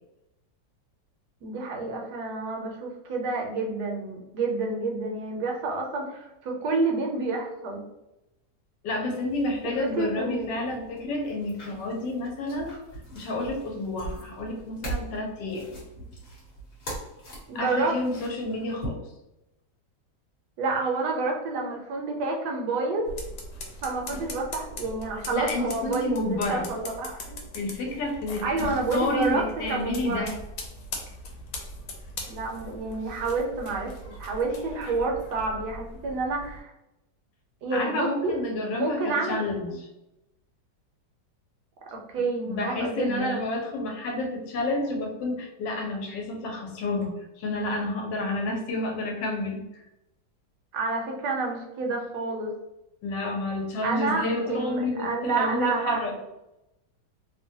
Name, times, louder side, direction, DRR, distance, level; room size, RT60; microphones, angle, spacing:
voice 1, 1.4-7.8 9.6-11.1 17.5-17.9 20.6-23.2 23.8-27.3 28.4-29.4 29.7-30.3 32.3-36.7 37.6-38.4 38.7-39.5 41.9-43.4 50.7-52.5 53.8-56.0, right 3 dB, 75° right, 1 dB, 1.1 m, -29 dB
voice 2, 8.8-12.8 13.1-15.7 17.5-19.0 25.3-26.7 27.5-30.3 37.7-39.9 42.5-49.8 53.0-56.2, left 2 dB, 90° left, 2 dB, 1.3 m, -30 dB
sound 1, 9.3-18.9, right 2 dB, 40° left, 1.0 m, -42 dB
sound 2, 23.1-36.6, left 1 dB, 75° left, 1.1 m, -40 dB
3.0 x 2.1 x 2.6 m, 0.92 s
omnidirectional pair, 1.9 m